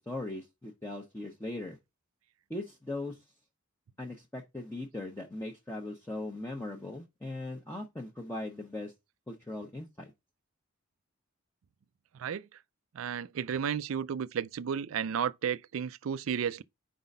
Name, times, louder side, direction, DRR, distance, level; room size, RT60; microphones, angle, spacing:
voice 1, 0.0-1.8 2.5-3.1 4.0-8.9 9.3-10.1, left 2 dB, 10° left, 0.8 m, -39 dB
voice 2, 12.9-16.6, right 7 dB, 75° right, 0.4 m, -33 dB
4.9 x 3.9 x 5.3 m
head